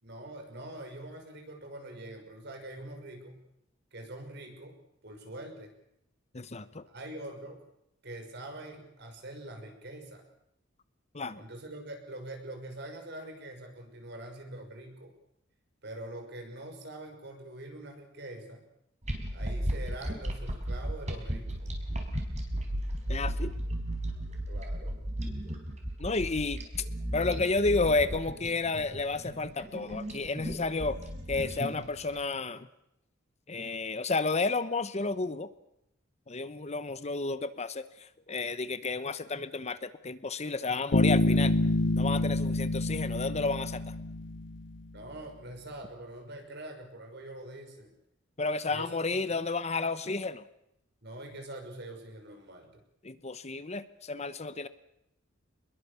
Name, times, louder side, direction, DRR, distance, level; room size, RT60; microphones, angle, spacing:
voice 1, 0.0-3.4 3.9-4.8 5.0-5.7 6.9-7.6 8.0-10.2 11.4-15.1 15.8-18.6 19.3-21.7 24.5-25.0 44.9-47.9 48.7-49.2 51.0-52.8, right 1 dB, 60° right, 4 dB, 6.0 m, -44 dB
voice 2, 6.3-6.8 11.1-11.4 23.1-23.5 26.0-26.6 27.1-31.0 31.3-32.7 33.5-35.5 36.3-41.5 42.0-43.9 48.4-50.4 53.0-54.7, left 3 dB, 35° left, 13 dB, 1.0 m, -31 dB
sound 1, 19.0-32.1, right 1 dB, 35° right, 4.9 m, -35 dB
Bass guitar, 40.9-44.6, left 2 dB, 65° left, 1.0 m, -27 dB
26.5 x 21.5 x 7.0 m, 0.80 s
head